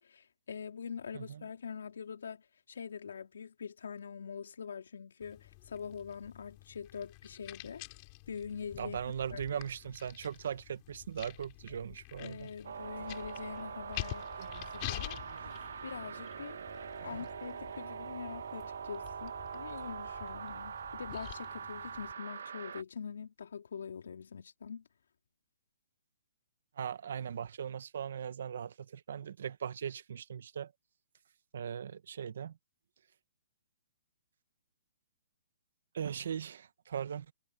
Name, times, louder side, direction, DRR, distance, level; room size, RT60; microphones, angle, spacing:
voice 1, 0.0-7.8 8.3-9.0 9.3-9.6 12.2-14.5 14.7-15.2 15.8-24.9, left 6 dB, 80° left, 3.9 m, -44 dB
sound 1, 5.2-22.1, left 30 dB, 25° left, 6.0 m, -48 dB
voice 2, 8.8-12.5 13.0-13.1 14.4-15.8 17.0-17.2 26.8-30.7 31.5-32.6 35.9-37.3, right 8 dB, 65° right, 1.2 m, -40 dB
sound 2, 12.6-22.8, right 7 dB, 80° right, 2.0 m, -43 dB
hypercardioid pair, 165°, 0 cm